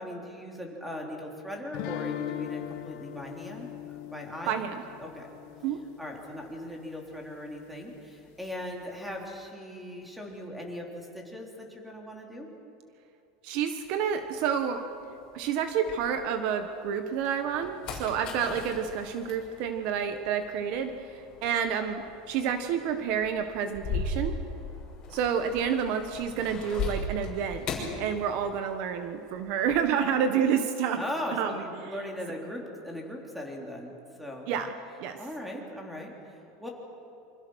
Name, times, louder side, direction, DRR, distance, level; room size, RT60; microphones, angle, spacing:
voice 1, 0.0-3.7 4.1-4.6 5.0-5.3 6.0-12.5 31.0-34.5 35.2-36.1 36.6-36.7, left 1 dB, ahead, 0 dB, 3.4 m, -39 dB
sound 1, 1.7-6.7, left 12 dB, 55° left, 1.3 m, -39 dB
voice 2, 4.5-4.8 5.6-5.8 13.4-14.8 15.3-24.4 25.1-31.0 31.3-31.6 34.5-34.7 35.0-35.2, right 7 dB, 50° right, 8 dB, 1.3 m, -29 dB
sound 2, 13.8-16.6 17.1-28.8 29.1-29.9, left 3 dB, 30° left, 6.0 m, -39 dB
27.0 x 25.5 x 6.4 m, 2.7 s
supercardioid pair, 165°, 3 cm